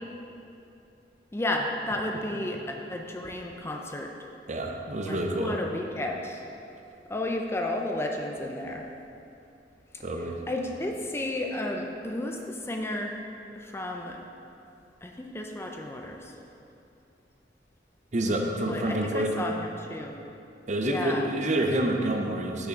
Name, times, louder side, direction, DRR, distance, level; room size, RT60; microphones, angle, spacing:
voice 1, 1.3-4.1 5.1-6.4 7.1-8.9 10.5-13.2 13.5-14.2 15.0-16.3 18.4-20.2 20.8-21.3, left 1 dB, 15° left, 1 dB, 0.4 m, -32 dB
voice 2, 4.5-5.6 10.0-10.4 18.1-19.4 20.7-22.7, right 1 dB, 40° right, 2 dB, 0.7 m, -28 dB
6.5 x 5.7 x 5.2 m, 2.7 s
head